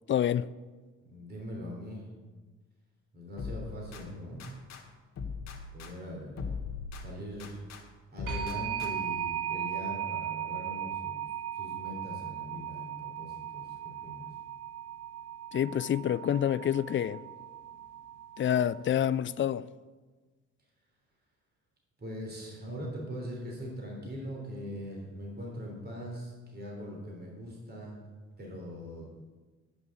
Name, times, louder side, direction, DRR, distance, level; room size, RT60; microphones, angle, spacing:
voice 1, 0.1-0.5 15.5-17.2 18.4-19.7, left 10 dB, 40° left, 0.4 m, -27 dB
voice 2, 1.1-2.1 3.1-4.5 5.7-6.4 7.0-7.6 8.1-11.2 11.5-14.3 22.0-28.0 28.4-29.1, equal, 30° right, 3.5 m, -41 dB
sound 1, 3.4-4.8 5.2-7.8 8.2-9.2, left 5 dB, 65° left, 1.9 m, -41 dB
sound 2, 8.3-18.9, right 10 dB, 80° right, 1.7 m, -37 dB
10.5 x 6.4 x 7.3 m
cardioid pair, 90°, 30 cm